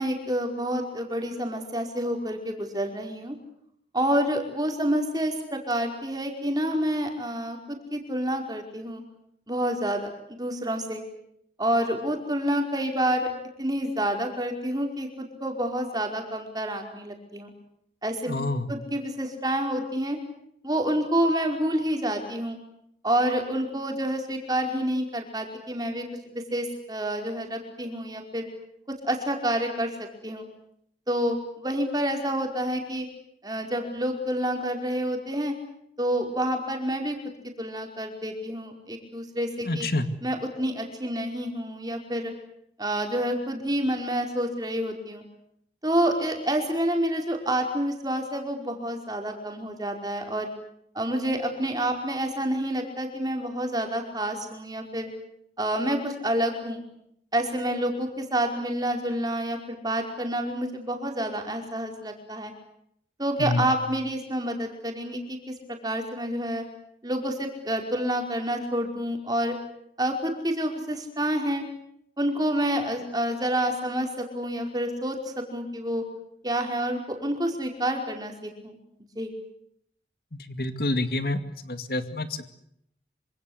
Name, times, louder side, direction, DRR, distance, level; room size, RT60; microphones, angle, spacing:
voice 1, 0.0-3.4 3.9-9.0 9.5-11.0 11.6-13.3 13.6-17.5 18.0-18.3 18.7-20.2 20.6-22.6 23.0-26.0 26.3-28.5 28.9-30.4 31.1-33.1 33.4-35.6 36.0-37.2 37.6-39.9 40.2-42.3 42.8-45.2 45.8-50.5 50.9-55.1 55.6-56.8 57.3-62.5 63.2-65.6 65.8-66.6 67.0-69.6 70.0-71.6 72.2-76.0 76.4-78.8 79.1-79.3, right 1 dB, 20° right, 3 dB, 5.1 m, -28 dB
voice 2, 18.3-18.7 39.6-40.1 63.4-63.7 80.3-82.5, left 2 dB, 60° left, 9 dB, 2.3 m, -28 dB
27.0 x 26.5 x 8.2 m, 0.73 s
head